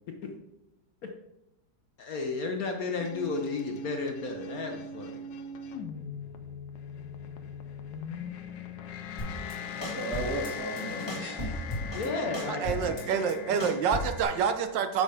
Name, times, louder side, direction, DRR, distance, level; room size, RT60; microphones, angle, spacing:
voice 1, 2.0-5.2 11.9-12.6, left 4 dB, 60° left, 3 dB, 1.2 m, -33 dB
sound 1, 3.0-14.5, left 4 dB, 80° left, 1.4 m, -40 dB
sound 2, 9.2-9.5 9.8-10.5 10.8-12.1 12.3-14.2, left 2 dB, 15° left, 2.2 m, -35 dB
voice 2, 9.8-11.6 12.2-13.2, right 2 dB, 10° right, -8 dB, 2.0 m, -36 dB
voice 3, 12.5-15.0, right 7 dB, 85° right, 8 dB, 1.5 m, -27 dB
9.7 x 6.3 x 3.5 m, 0.91 s
omnidirectional pair, 1.9 m